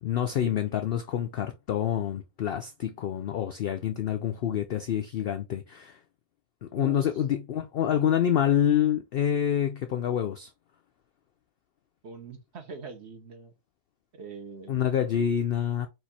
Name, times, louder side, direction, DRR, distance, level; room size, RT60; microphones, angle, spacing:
voice 1, 0.0-6.0 6.6-10.5 14.7-15.9, left 9 dB, 75° left, 0.5 m, -27 dB
voice 2, 6.7-7.2 12.0-13.5 14.1-14.8, right 5 dB, 55° right, 1.0 m, -43 dB
4.5 x 2.5 x 4.1 m
omnidirectional pair, 1.5 m